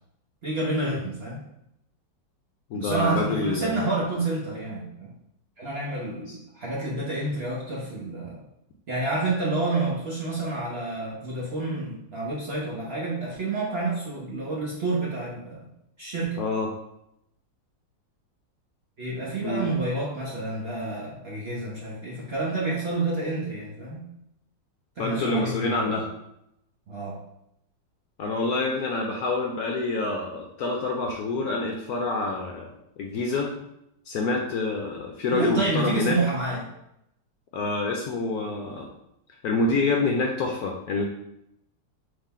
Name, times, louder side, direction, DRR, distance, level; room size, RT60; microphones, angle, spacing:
voice 1, 0.4-1.4 2.7-5.1 5.6-8.4 8.9-15.7 16.0-16.4 19.0-24.1 25.0-26.0 26.9-27.2 35.3-36.6, right 2 dB, 50° right, -5 dB, 0.8 m, -29 dB
voice 2, 2.7-3.8 6.3-6.4 16.4-16.7 19.4-19.7 25.0-26.1 28.2-32.7 33.0-33.5 34.1-36.2 37.5-38.9 39.4-41.0, left 3 dB, 70° left, 1 dB, 0.9 m, -27 dB
3.7 x 3.3 x 4.1 m, 0.81 s
omnidirectional pair, 2.0 m